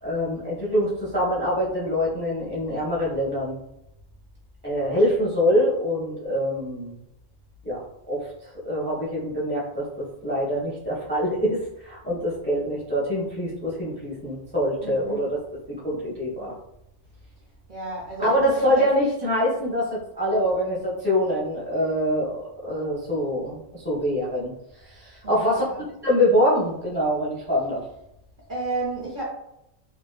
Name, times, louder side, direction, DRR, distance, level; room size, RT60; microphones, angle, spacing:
voice 1, 0.0-3.6 4.6-6.9 7.6-7.8 8.1-15.4 15.8-16.5 18.2-24.5 24.9-25.6 26.0-27.8, equal, 15° left, -6 dB, 0.4 m, -24 dB
voice 2, 14.8-15.3 17.7-18.9 25.2-25.8 28.5-29.2, right 2 dB, 50° right, -5 dB, 0.6 m, -32 dB
2.6 x 2.3 x 2.2 m, 0.82 s
omnidirectional pair, 1.4 m